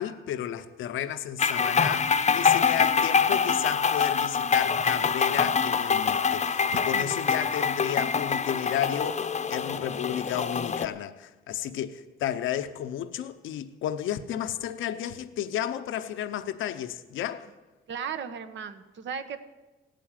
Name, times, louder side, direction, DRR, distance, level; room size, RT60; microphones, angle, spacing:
voice 1, 0.0-9.2 9.5-17.5, left 11 dB, 80° left, 0.8 m, -32 dB
sound 1, 1.4-10.8, left 6 dB, 35° left, 0.8 m, -25 dB
voice 2, 6.7-7.3 17.9-19.4, right 7 dB, 65° right, 1.3 m, -36 dB
17.0 x 9.0 x 9.1 m
cardioid pair, 90°, 20 cm